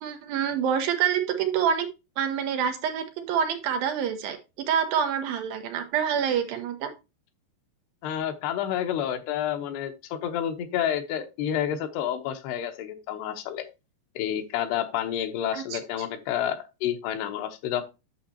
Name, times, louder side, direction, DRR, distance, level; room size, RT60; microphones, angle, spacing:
voice 1, 0.0-1.9 2.2-4.4 4.7-6.9 15.5-15.8, right 8 dB, 75° right, 6 dB, 2.5 m, -26 dB
voice 2, 8.0-13.7 14.2-17.8, left 10 dB, 90° left, 7 dB, 2.9 m, -29 dB
8.8 x 6.4 x 2.8 m, 0.26 s
omnidirectional pair, 4.7 m